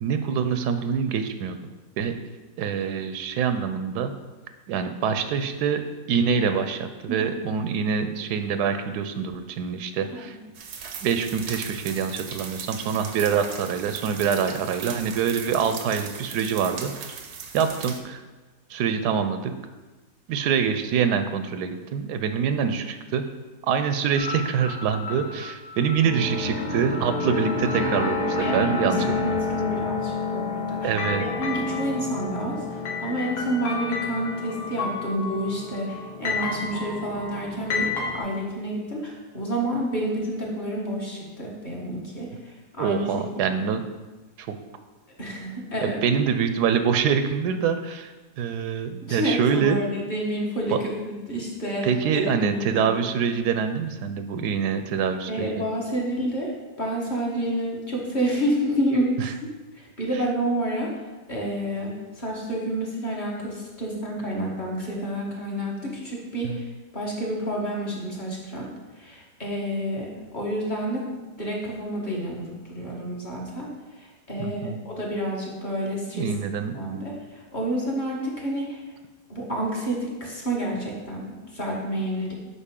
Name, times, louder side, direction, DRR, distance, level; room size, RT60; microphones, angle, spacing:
voice 1, 0.0-1.6 2.0-2.1 2.6-4.1 4.7-10.4 11.0-17.2 17.5-18.2 18.7-19.5 20.3-23.2 23.6-29.5 30.8-31.2 42.8-43.8 44.4-44.6 45.8-49.8 50.7-50.8 51.8-55.6 66.4-66.6 74.4-74.8 76.1-76.7, right 7 dB, 80° right, 9 dB, 1.1 m, -25 dB
sound 1, 10.5-18.0, right 6 dB, 60° right, 0.8 m, -38 dB
sound 2, 24.2-38.2, left 4 dB, 80° left, 1.8 m, -29 dB
voice 2, 28.4-29.0 29.2-30.9 31.2-43.3 45.2-46.2 49.0-50.8 51.0-52.9 55.3-56.5 56.8-59.3 59.7-60.9 61.3-66.7 66.9-71.0 71.4-76.3 76.7-78.8 79.3-82.3, right 1 dB, 30° left, -4 dB, 1.5 m, -29 dB
8.1 x 5.3 x 3.7 m, 1.2 s
omnidirectional pair, 1.7 m